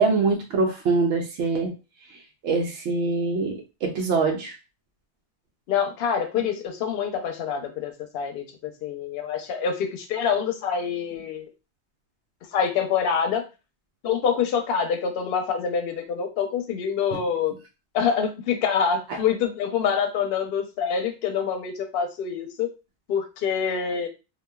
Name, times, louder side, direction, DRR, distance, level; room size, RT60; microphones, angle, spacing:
voice 1, 0.0-1.7 2.4-4.5 17.1-17.2, right 4 dB, 90° right, 1 dB, 0.9 m, -24 dB
voice 2, 5.7-11.5 12.5-13.5 14.0-17.5 17.9-22.7 23.1-24.1, left 7 dB, 65° left, 6 dB, 0.7 m, -26 dB
3.0 x 2.2 x 2.2 m, 0.29 s
omnidirectional pair, 1.2 m